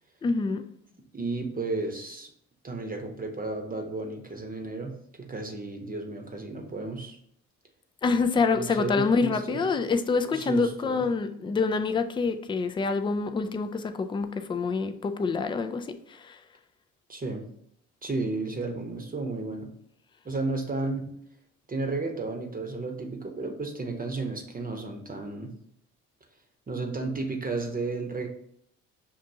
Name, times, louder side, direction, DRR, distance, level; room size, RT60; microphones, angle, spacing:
voice 1, 0.2-0.7 8.0-16.4, left 4 dB, 15° left, 8 dB, 0.3 m, -26 dB
voice 2, 1.1-2.3 2.6-4.9 5.2-7.2 8.6-9.7 10.3-11.0 17.1-17.5 18.0-19.7 20.2-21.0 21.7-25.5 26.7-28.3, right 3 dB, 25° right, 3 dB, 0.9 m, -33 dB
5.3 x 2.5 x 2.7 m, 0.71 s
hypercardioid pair, 55°, 36 cm